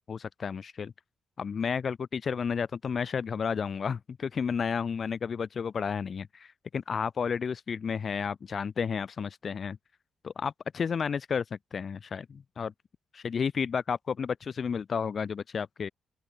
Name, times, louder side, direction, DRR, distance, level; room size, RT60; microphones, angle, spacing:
voice 1, 0.1-0.9 1.4-9.8 10.2-12.7 13.1-15.9, left 6 dB, 55° left, 0.6 m, -32 dB
open air
hypercardioid pair, 40°, 0 cm